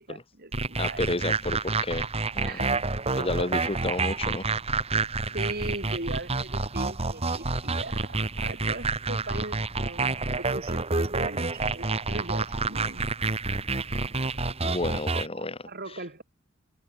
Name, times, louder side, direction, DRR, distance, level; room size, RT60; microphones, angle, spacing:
voice 1, 0.0-1.1 2.4-2.7 5.3-13.1 15.3-16.2, right 2 dB, 50° right, 7.5 m, -39 dB
sound 1, 0.5-15.3, right 3 dB, 30° right, 1.7 m, -29 dB
voice 2, 0.8-2.1 2.3-2.7 3.2-4.5 14.6-16.0, left 2 dB, 30° left, 2.4 m, -31 dB
head